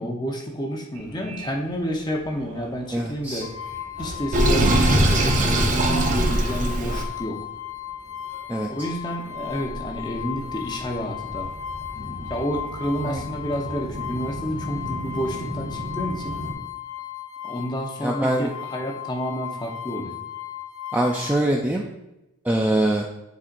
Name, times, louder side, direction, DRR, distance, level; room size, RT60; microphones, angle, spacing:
voice 1, 0.0-3.5 4.0-7.4 8.7-11.5 12.0-16.4 17.4-20.2, equal, 20° left, 1 dB, 0.8 m, -30 dB
Subway metro underground, 0.9-16.5, right 1 dB, 85° right, 1.7 m, -39 dB
voice 2, 2.9-3.4 8.5-8.7 13.1-13.2 18.0-18.5 20.9-21.8 22.4-23.0, right 1 dB, 5° right, -1 dB, 0.3 m, -23 dB
sound 1, 3.4-21.4, left 10 dB, 65° left, 0.5 m, -36 dB
Sink (filling or washing), 4.3-7.1, right 1 dB, 35° right, 0.7 m, -20 dB
9.7 x 4.4 x 2.6 m, 0.93 s
head